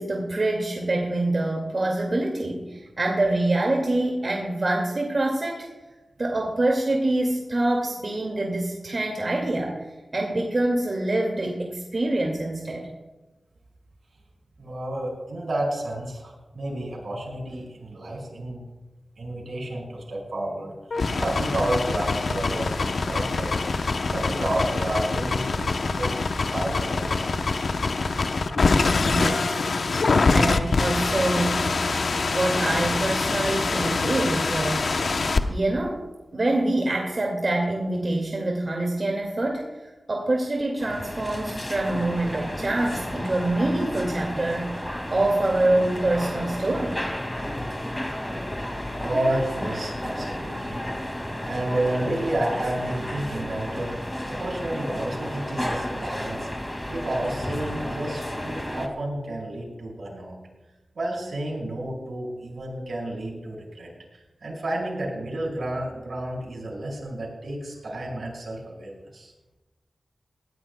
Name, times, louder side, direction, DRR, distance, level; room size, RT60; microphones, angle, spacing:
voice 1, 0.0-5.7 6.2-9.8 10.1-12.9 28.8-29.7 30.3-31.8 32.3-34.9 35.5-36.0 36.3-39.7 40.1-47.0, right 2 dB, 55° right, 0 dB, 2.0 m, -25 dB
voice 2, 14.6-18.6 19.2-23.6 24.1-27.5 49.0-50.8 51.4-53.9 54.3-56.5 56.9-60.3 60.9-69.3, right 1 dB, 80° right, -2 dB, 5.2 m, -31 dB
sound 1, 20.9-35.4, left 3 dB, 75° left, 0.7 m, -24 dB
sound 2, 40.8-58.9, left 1 dB, 15° left, 2.0 m, -32 dB
20.0 x 14.0 x 2.2 m, 1.1 s
cardioid pair, 45°, 0 cm